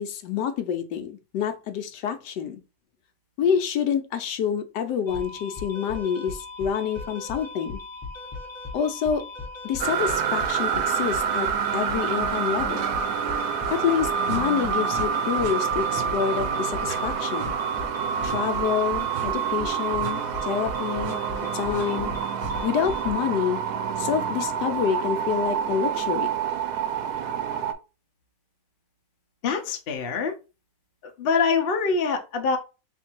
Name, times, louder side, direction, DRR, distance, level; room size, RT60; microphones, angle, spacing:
voice 1, 0.0-2.6 3.4-7.8 8.7-9.3 9.6-12.9 13.7-17.5 18.2-21.2 21.5-22.1 22.6-23.6 24.0-26.3, left 8 dB, 75° left, 1.2 m, -27 dB
sound 1, 5.1-23.1, left 3 dB, 20° left, 0.8 m, -38 dB
sound 2, 9.8-27.7, right 7 dB, 70° right, 1.0 m, -27 dB
sound 3, 13.6-13.8 14.2-14.4 14.9-15.1 15.4-15.6 15.9-16.1 16.4-16.5 16.8-17.0 17.4-17.5 18.2-18.4 19.1-19.3 20.0-20.1 21.0-21.2 21.7-21.9 22.4-22.6, right 5 dB, 55° right, 0.8 m, -37 dB
voice 2, 29.4-30.3 31.0-32.6, left 5 dB, 60° left, 0.6 m, -24 dB
3.6 x 2.6 x 4.4 m
omnidirectional pair, 1.9 m